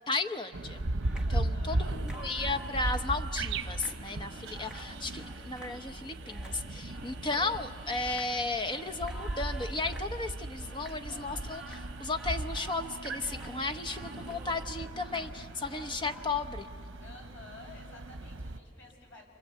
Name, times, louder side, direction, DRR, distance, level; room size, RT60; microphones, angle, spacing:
voice 1, 0.1-0.8 1.2-16.7, left 3 dB, 25° left, 8 dB, 0.9 m, -34 dB
sound 1, 0.5-18.6, right 2 dB, 85° right, 0.9 m, -37 dB
sound 2, 1.0-16.3, right 1 dB, 5° right, 1.3 m, -51 dB
voice 2, 1.3-1.9 17.0-19.3, left 3 dB, 80° left, 0 dB, 6.6 m, -51 dB
sound 3, 1.8-14.6, right 7 dB, 35° right, 2.0 m, -56 dB
27.5 x 26.0 x 8.3 m, 2.5 s
head